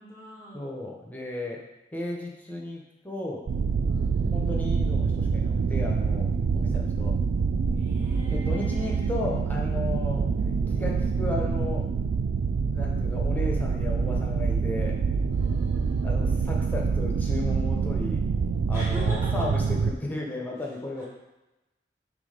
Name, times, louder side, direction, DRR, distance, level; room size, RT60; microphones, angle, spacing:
voice 1, 0.0-0.8 3.9-4.6 7.7-9.1 15.3-16.1 18.7-19.6 20.4-21.0, equal, 15° right, -6 dB, 1.5 m, -42 dB
voice 2, 0.5-1.6 1.9-3.4 4.3-7.2 8.3-10.3 10.7-11.9 12.7-14.9 16.0-18.2 18.7-21.0, left 2 dB, 10° left, -1 dB, 0.8 m, -34 dB
sound 1, 3.5-19.9, right 5 dB, 85° right, 0.3 m, -26 dB
6.1 x 3.6 x 5.0 m, 1.0 s
head